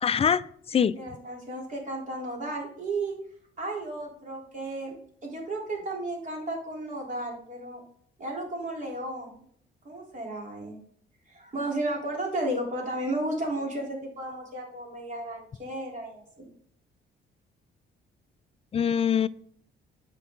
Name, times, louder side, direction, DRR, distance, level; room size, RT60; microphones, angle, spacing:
voice 1, 0.0-1.0 18.7-19.3, left 7 dB, 30° left, 17 dB, 0.4 m, -24 dB
voice 2, 0.9-3.2 3.6-4.9 5.2-7.8 8.2-9.4 9.8-10.8 11.3-16.5, right 1 dB, 40° right, -1 dB, 3.5 m, -33 dB
8.5 x 5.4 x 3.8 m, 0.63 s
cardioid pair, 90°, 20 cm